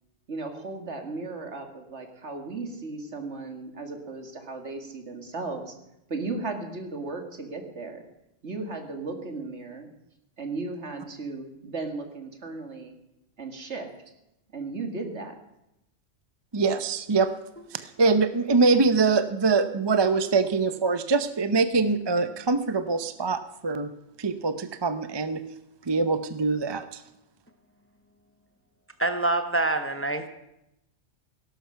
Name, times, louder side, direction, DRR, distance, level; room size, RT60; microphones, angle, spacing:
voice 1, 0.3-5.7 6.1-8.0 8.4-9.9 10.4-12.9 13.4-13.9 14.5-15.4, right 3 dB, 70° right, 5 dB, 2.3 m, -35 dB
voice 2, 16.5-17.3 18.0-23.9 24.2-25.4 25.9-27.0, right 4 dB, 30° right, 10 dB, 0.6 m, -23 dB
voice 3, 29.0-30.3, right 2 dB, 10° left, 8 dB, 0.8 m, -25 dB
17.5 x 12.0 x 5.8 m, 0.87 s
omnidirectional pair, 1.2 m